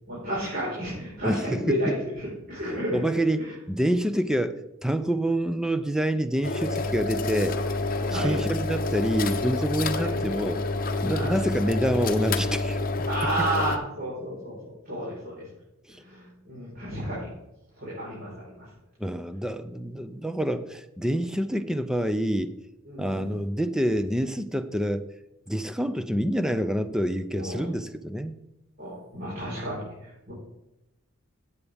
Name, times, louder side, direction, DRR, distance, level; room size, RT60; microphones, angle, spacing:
voice 1, 0.1-2.2 2.5-3.0 3.4-3.5 8.1-8.4 9.9-10.1 11.1-11.4 13.1-14.6 14.9-15.4 16.0-17.3 17.8-18.6 22.8-23.2 27.3-27.6 28.8-29.8 30.3-30.4, right 1 dB, 45° right, -8 dB, 4.7 m, -31 dB
voice 2, 1.2-1.9 2.9-7.6 8.1-10.6 11.0-12.8 19.0-22.5 23.0-25.0 25.5-28.3, right 1 dB, 5° right, 10 dB, 0.5 m, -27 dB
sound 1, 6.4-13.8, left 3 dB, 40° left, 0.8 m, -28 dB
15.0 x 8.4 x 3.5 m, 0.93 s
head